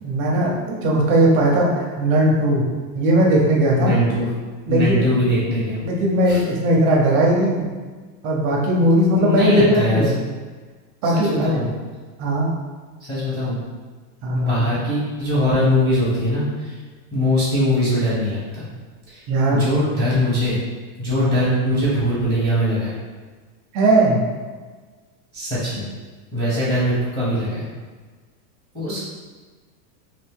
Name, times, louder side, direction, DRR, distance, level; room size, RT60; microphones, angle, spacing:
voice 1, 0.0-2.7 2.9-4.0 4.7-5.0 5.8-7.6 8.2-10.2 11.0-11.6 12.2-12.5 14.2-14.7 19.3-19.6 21.2-21.3 23.7-24.2, right 1 dB, 30° right, -2 dB, 0.4 m, -18 dB
voice 2, 3.8-4.3 4.7-5.8 6.2-6.4 9.1-10.0 11.0-11.7 13.1-13.6 14.3-16.8 17.1-18.7 19.1-19.2 19.5-20.6 21.0-22.9 25.3-25.8 26.3-27.7 28.7-29.1, left 1 dB, 10° left, -9 dB, 0.7 m, -21 dB
2.7 x 2.5 x 3.5 m, 1.4 s
supercardioid pair, 150°, 47 cm